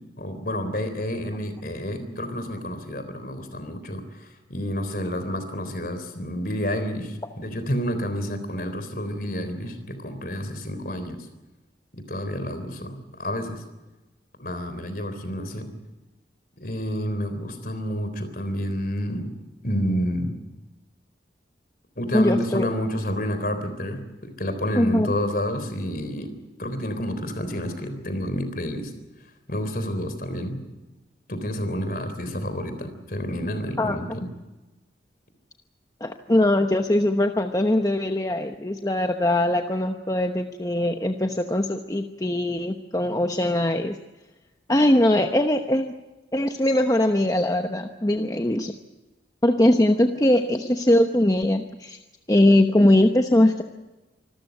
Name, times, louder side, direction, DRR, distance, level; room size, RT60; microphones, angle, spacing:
voice 1, 0.2-11.2 12.1-13.6 14.4-15.7 16.6-19.3 19.6-20.3 22.0-26.3 26.6-28.9 29.5-30.6 31.3-34.3, equal, 50° left, 9 dB, 3.7 m, -29 dB
voice 2, 22.1-22.7 24.7-25.1 33.8-34.0 36.0-44.0 44.7-45.9 46.3-48.7 49.4-52.0 52.3-53.6, left 1 dB, 20° left, 5 dB, 0.9 m, -21 dB
26.0 x 14.0 x 9.2 m, 1.1 s
head